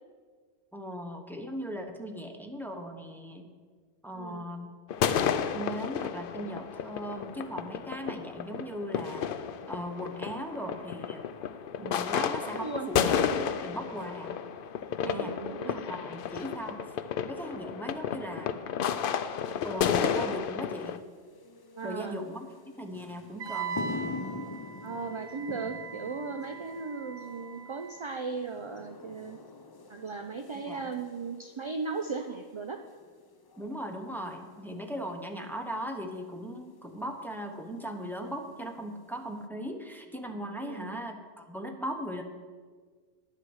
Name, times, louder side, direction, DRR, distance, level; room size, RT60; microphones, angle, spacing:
voice 1, 0.7-3.5 4.0-4.7 5.5-9.3 9.7-11.2 11.8-14.4 15.1-15.4 15.6-16.8 17.2-18.5 19.6-21.0 21.8-23.9 30.7-30.9 33.6-42.2, equal, ahead, 3 dB, 0.8 m, -38 dB
sound 1, 4.9-21.0, left 8 dB, 65° left, 0.7 m, -32 dB
voice 2, 12.4-12.9 15.0-15.9 16.3-16.4 21.8-22.2 24.8-29.4 29.9-32.8 40.6-41.0, right 4 dB, 50° right, 6 dB, 0.3 m, -37 dB
sound 2, 20.8-39.4, left 3 dB, 35° left, 0.4 m, -46 dB
Wind instrument woodwind instrument, 23.4-28.0, right 5 dB, 85° right, 1.0 m, -40 dB
10.0 x 7.4 x 6.3 m, 1.5 s
omnidirectional pair, 1.1 m